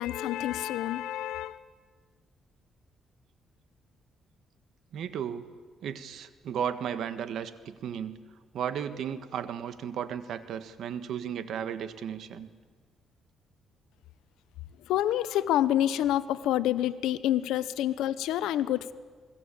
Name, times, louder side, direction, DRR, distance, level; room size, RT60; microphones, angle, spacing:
voice 1, 0.0-1.6 14.9-18.9, left 12 dB, 90° left, 14 dB, 0.9 m, -28 dB
voice 2, 4.9-5.5 5.8-8.2 8.5-12.5, right 8 dB, 70° right, 11 dB, 1.6 m, -34 dB
28.0 x 20.5 x 8.5 m, 1.5 s
cardioid pair, 90°, 0 cm